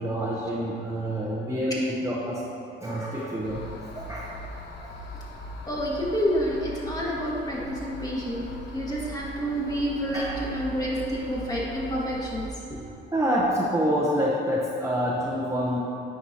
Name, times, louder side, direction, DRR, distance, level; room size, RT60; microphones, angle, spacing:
voice 1, 0.0-2.4 2.8-3.6 3.9-4.3 10.1-10.4 13.1-15.8, equal, 15° right, -5 dB, 0.8 m, -27 dB
sound 1, 3.4-12.5, equal, 60° left, 0.8 m, -40 dB
voice 2, 5.7-12.5, equal, 20° left, -5 dB, 1.5 m, -29 dB
9.2 x 4.8 x 2.8 m, 2.6 s
cardioid pair, 90°, 20 cm